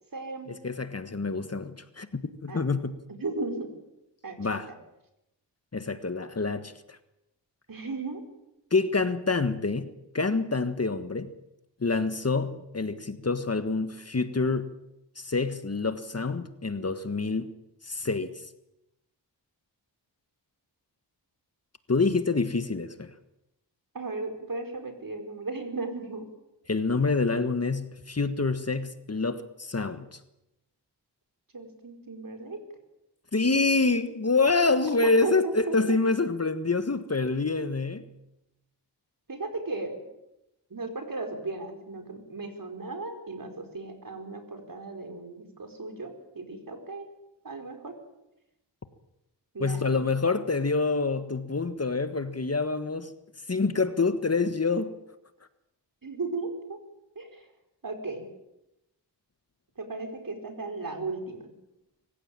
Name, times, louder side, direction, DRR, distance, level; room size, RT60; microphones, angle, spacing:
voice 1, 0.1-0.5 2.5-2.6 3.1-3.7 4.2-4.4 4.7-4.8 7.7-8.2 23.9-26.3 31.5-32.6 35.0-36.0 39.3-40.1 40.7-47.1 47.4-47.9 49.5-50.0 56.0-56.8 57.1-57.5 57.8-58.2 59.8-61.4, right 3 dB, 50° right, 5 dB, 5.1 m, -35 dB
voice 2, 0.6-2.9 4.4-4.7 5.7-6.7 8.7-9.9 10.1-11.3 11.8-14.7 15.2-17.5 17.8-18.3 21.9-23.1 26.7-30.2 33.3-38.1 49.6-53.1 53.5-54.9, left 3 dB, 35° left, 11 dB, 1.5 m, -27 dB
24.5 x 15.5 x 9.0 m, 0.89 s
cardioid pair, 60°, 42 cm